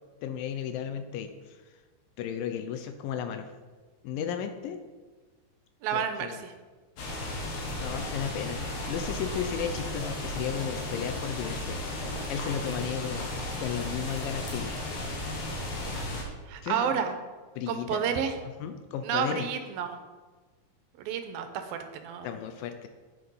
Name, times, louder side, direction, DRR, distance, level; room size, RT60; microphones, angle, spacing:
voice 1, 0.2-1.6 2.2-3.5 4.0-4.8 5.9-6.4 7.8-11.8 12.3-13.3 13.6-15.0 16.6-17.0 17.6-18.2 18.6-19.5 22.2-22.9, left 8 dB, 80° left, 8 dB, 2.2 m, -34 dB
voice 2, 5.8-6.5 13.1-13.6 16.5-17.2 17.7-18.4 19.0-20.0 21.0-22.3, right 8 dB, 80° right, 7 dB, 2.5 m, -31 dB
sound 1, 7.0-16.2, left 1 dB, 55° left, 2.4 m, -34 dB
8.6 x 7.1 x 5.4 m, 1.4 s
omnidirectional pair, 4.3 m